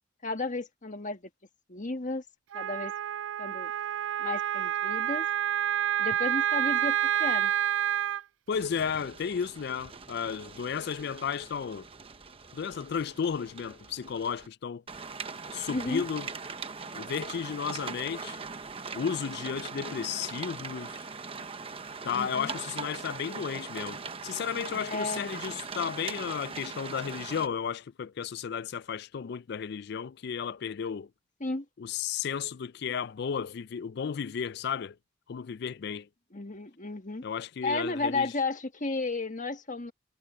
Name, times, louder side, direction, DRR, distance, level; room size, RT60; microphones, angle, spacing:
voice 1, 0.2-1.2 1.7-2.2 2.5-2.9 3.4-3.7 4.2-5.3 6.0-7.5 15.7-16.0 22.1-22.5 24.9-25.3 31.4-31.6 36.3-37.2 37.6-39.9, left 3 dB, 40° left, 1.6 m, -33 dB
Wind instrument woodwind instrument, 2.5-8.2, right 10 dB, 80° right, 0.3 m, -28 dB
voice 2, 8.5-11.9 12.5-14.8 15.5-16.3 16.9-18.4 18.9-21.1 22.0-31.1 31.8-35.0 35.3-36.1 37.2-38.3, left 7 dB, 60° left, 0.4 m, -33 dB
sound 1, 8.5-14.5 14.9-27.5, right 4 dB, 30° right, 1.0 m, -41 dB
head